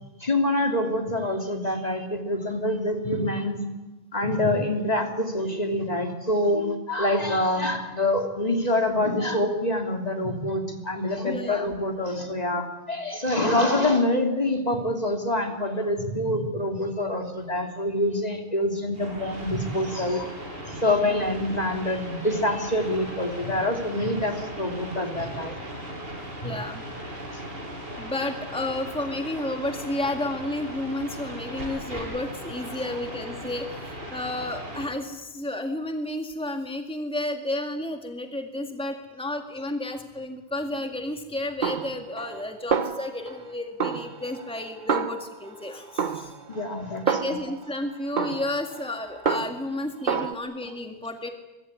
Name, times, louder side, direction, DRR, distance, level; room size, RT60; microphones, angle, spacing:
voice 1, 0.2-3.6 4.1-20.3 20.7-25.6 26.4-26.5 46.5-47.4, left 1 dB, 40° left, 4 dB, 3.1 m, -26 dB
voice 2, 11.3-11.7 21.0-21.3 26.4-26.8 28.0-46.4 47.1-51.3, left 1 dB, 5° left, 5 dB, 2.1 m, -32 dB
sound 1, 18.9-34.9, equal, 65° right, 7.6 m, -38 dB
Snare drum, 41.6-42.4 42.7-43.5 43.8-45.6 46.0-47.7 48.2-49.8 50.1-50.3, right 6 dB, 50° right, 1.2 m, -29 dB
23.5 x 23.5 x 9.8 m, 1.1 s
omnidirectional pair, 1.1 m